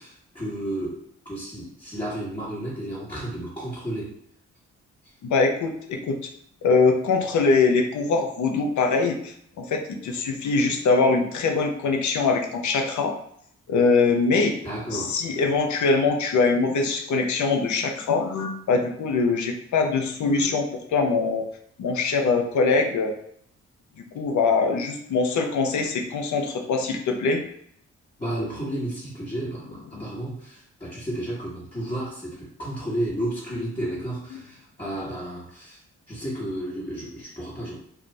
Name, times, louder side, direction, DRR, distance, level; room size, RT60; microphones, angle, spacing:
voice 1, 0.0-4.1 14.6-15.2 28.2-35.8 36.1-37.8, right 1 dB, 20° left, -9 dB, 1.4 m, -32 dB
voice 2, 5.3-6.2 6.6-13.1 13.7-14.5 14.9-21.4 21.8-23.1 24.0-27.4 29.9-30.0, left 4 dB, 70° left, 4 dB, 0.6 m, -23 dB
2.4 x 2.4 x 3.2 m, 0.68 s
supercardioid pair, 50°, 30 cm